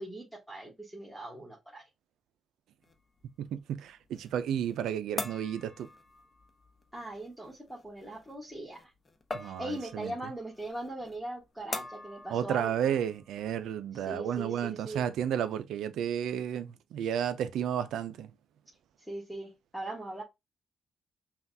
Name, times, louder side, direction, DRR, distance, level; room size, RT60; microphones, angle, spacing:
voice 1, 0.0-1.8 6.9-8.9 9.4-12.8 13.9-15.0 19.1-20.2, right 1 dB, ahead, 1.4 m, -40 dB
sound 1, 2.8-13.7, left 2 dB, 30° left, 0.8 m, -45 dB
voice 2, 3.4-5.9 9.3-10.1 12.3-18.3, right 9 dB, 90° right, 0.5 m, -32 dB
5.6 x 2.4 x 2.7 m
cardioid pair, 95°, 0 cm